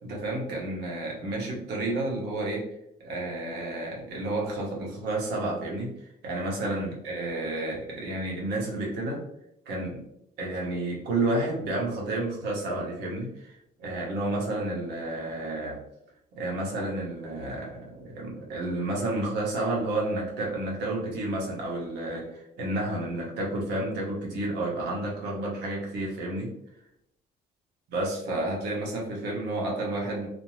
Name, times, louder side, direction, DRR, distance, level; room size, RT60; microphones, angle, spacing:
voice 1, 0.0-2.7 3.0-9.2 9.7-10.0 10.4-15.8 16.3-26.5 27.9-30.3, right 2 dB, 75° right, -3 dB, 1.0 m, -31 dB
2.5 x 2.0 x 3.1 m, 0.79 s
cardioid pair, 110°, 17 cm